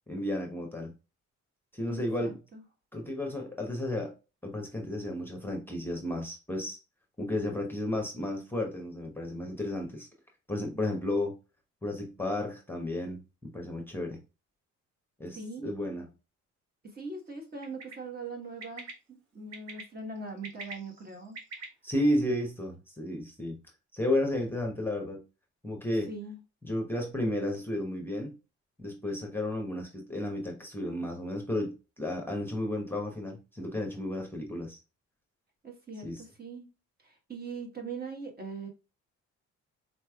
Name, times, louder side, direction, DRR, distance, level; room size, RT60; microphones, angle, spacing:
voice 1, 0.1-0.9 1.7-2.4 2.9-4.1 4.4-6.8 7.2-10.1 10.5-11.4 11.8-14.2 15.2-16.1 21.8-23.6 23.9-25.2 25.6-26.1 26.6-28.3 28.8-34.8 36.0-36.2, left 1 dB, 5° left, 0.9 m, -33 dB
voice 2, 1.9-2.6 15.3-15.7 16.8-21.4 26.1-26.4 35.6-36.7 37.0-38.7, right 3 dB, 30° right, 1.3 m, -41 dB
Bird, 17.6-17.9 18.6-18.9 19.5-19.8 20.3-21.6, right 3 dB, 60° right, 1.3 m, -43 dB
4.2 x 3.2 x 2.3 m
cardioid pair, 90°, 30 cm